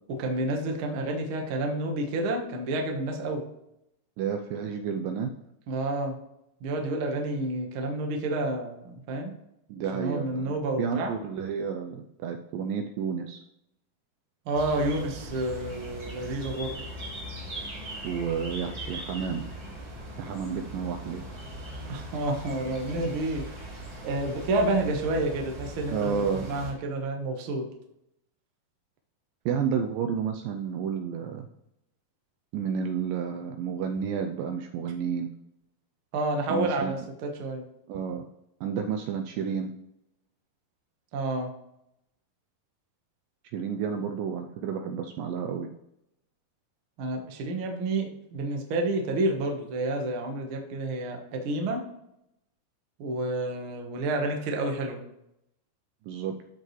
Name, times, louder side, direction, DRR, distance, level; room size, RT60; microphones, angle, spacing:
voice 1, 0.2-3.4 5.7-6.2 6.6-9.3 9.9-11.2 14.4-16.9 21.9-23.4 24.0-26.1 26.5-27.6 36.1-37.6 41.1-41.5 47.0-51.8 53.0-55.0, right 2 dB, 60° right, 2 dB, 1.3 m, -29 dB
voice 2, 4.2-5.3 9.7-13.4 18.0-19.5 20.2-21.2 25.9-26.5 29.5-31.5 32.5-35.3 36.5-37.0 37.9-38.3 38.6-39.7 43.5-45.7 56.1-56.3, right 7 dB, 80° right, 5 dB, 2.1 m, -31 dB
sound 1, 14.5-26.7, equal, 25° right, 3.1 m, -40 dB
13.5 x 5.3 x 3.2 m, 0.84 s
omnidirectional pair, 4.4 m